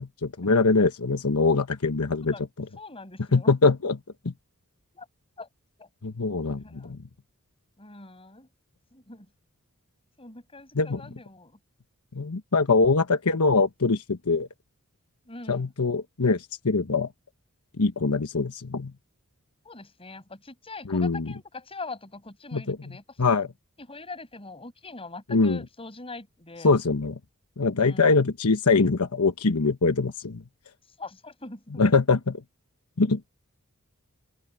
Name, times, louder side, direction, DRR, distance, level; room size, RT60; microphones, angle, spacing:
voice 1, 0.0-2.7 3.3-4.0 4.2-4.3 6.0-7.0 10.7-11.0 12.1-14.5 15.5-17.1 17.8-18.9 20.9-21.3 22.5-22.8 23.2-23.5 25.3-25.6 26.6-27.2 27.6-30.4 31.8-32.4 33.0-33.2, left 3 dB, 80° left, 1.1 m, -23 dB
voice 2, 2.8-3.5 4.9-5.1 5.4-5.5 5.8-5.9 6.5-7.0 7.8-8.5 8.9-9.3 10.2-11.6 15.3-15.7 19.6-23.0 23.8-26.7 27.8-28.2 31.0-31.8, left 3 dB, 25° left, 6.2 m, -42 dB
open air
head